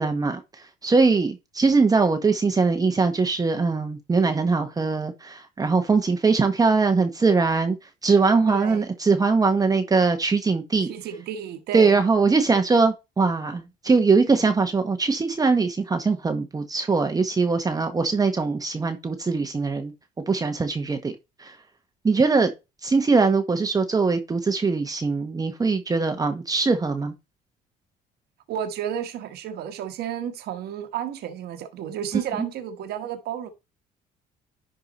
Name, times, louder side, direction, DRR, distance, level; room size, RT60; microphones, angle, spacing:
voice 1, 0.0-7.8 8.0-10.9 11.7-19.9 20.3-21.1 21.4-21.6 22.0-22.5 22.8-27.1, right 4 dB, 20° right, 0.9 m, -21 dB
voice 2, 8.5-8.9 10.9-12.0 28.5-33.5, right 9 dB, 70° right, 1.3 m, -32 dB
11.0 x 3.7 x 4.1 m
cardioid pair, 110°, 17 cm